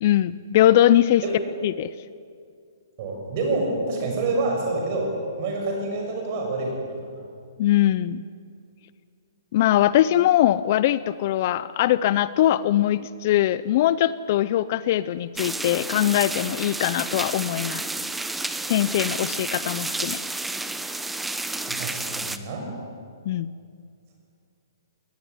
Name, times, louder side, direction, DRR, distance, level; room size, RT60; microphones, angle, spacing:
voice 1, 0.0-1.2 1.6-1.9 7.6-8.2 9.5-17.8 18.7-20.2 23.3-23.5, left 13 dB, 35° left, 17 dB, 0.5 m, -21 dB
voice 2, 3.0-5.1 5.4-7.2 21.7-22.7, right 2 dB, 35° right, 1 dB, 6.9 m, -27 dB
sound 1, 15.4-22.4, right 2 dB, 5° right, 0.7 m, -31 dB
21.0 x 19.0 x 9.7 m, 2.3 s
hypercardioid pair, 165°, 2 cm